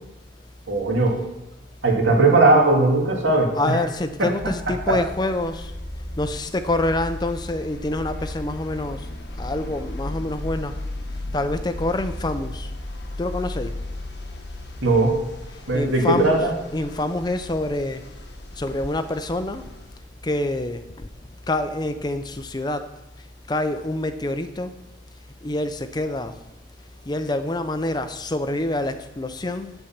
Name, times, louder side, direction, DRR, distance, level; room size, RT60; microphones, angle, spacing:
voice 1, 0.7-1.2 1.8-3.9 4.2-4.3 4.9-5.0 14.8-15.2 15.7-16.5, right 2 dB, 75° right, 0 dB, 2.4 m, -18 dB
voice 2, 3.6-5.7 6.2-9.1 9.4-10.8 11.3-12.7 13.2-13.8 15.7-16.4 16.7-18.0 18.6-19.6 20.2-21.1 21.5-22.9 23.5-24.7 25.4-26.4 27.1-29.7, left 2 dB, 20° left, 10 dB, 0.5 m, -26 dB
sound 1, 4.4-20.0, left 1 dB, 60° left, 1.5 m, -35 dB
8.4 x 7.9 x 5.8 m, 1.0 s
head